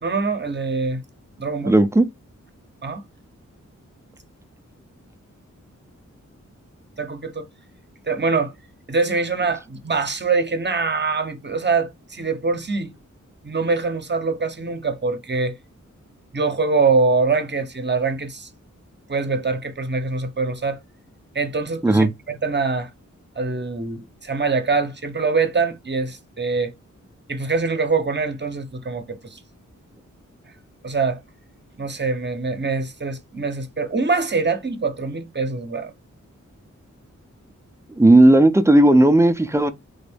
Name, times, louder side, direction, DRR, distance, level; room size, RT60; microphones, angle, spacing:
voice 1, 0.0-1.0 1.4-1.7 2.8-3.0 7.0-7.5 8.1-8.5 8.9-12.9 13.4-15.6 16.3-18.5 19.1-20.8 21.3-22.9 23.4-26.7 27.3-29.4 30.8-31.2 31.8-35.9, right 4 dB, 35° right, 0.8 m, -24 dB
voice 2, 1.6-2.1 21.8-22.1 38.0-39.7, right 1 dB, 10° right, 0.5 m, -14 dB
3.9 x 2.6 x 3.4 m
wide cardioid pair, 70°, 30 cm